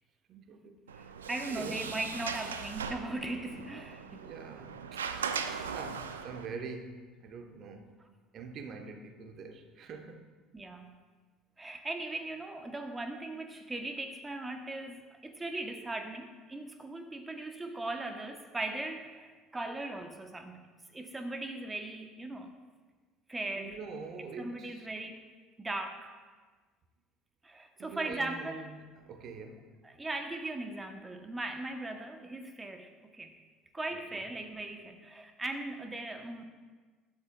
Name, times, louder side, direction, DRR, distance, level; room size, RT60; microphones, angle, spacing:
voice 1, 0.3-0.8 1.5-1.9 4.2-5.1 5.7-7.9 8.3-10.3 23.6-24.9 27.8-29.7 33.9-34.2, right 4 dB, 50° right, 1.3 m, -45 dB
Sliding door, 0.9-6.5, right 6 dB, 80° right, 0.7 m, -39 dB
voice 2, 1.0-4.3 10.5-11.0 11.6-22.5 23.3-23.8 24.4-25.2 25.6-26.1 27.4-28.8 29.8-33.4 33.7-36.4, right 2 dB, 15° right, 1.2 m, -39 dB
23.5 x 12.0 x 2.5 m
figure-of-eight pair, 60°, 0 cm